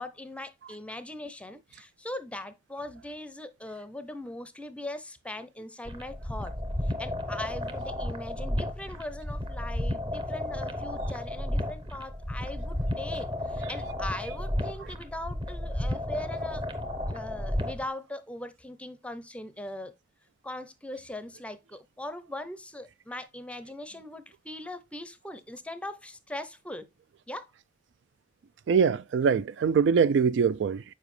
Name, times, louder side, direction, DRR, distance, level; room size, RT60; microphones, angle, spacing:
voice 1, 0.0-6.5 6.8-16.6 17.1-19.9 20.4-26.9 27.3-27.5, left 1 dB, 5° left, 0.6 m, -40 dB
sound 1, 5.8-17.9, left 1 dB, 25° right, 0.9 m, -33 dB
voice 2, 28.7-30.8, right 6 dB, 70° right, 0.3 m, -23 dB
7.2 x 4.9 x 3.1 m
head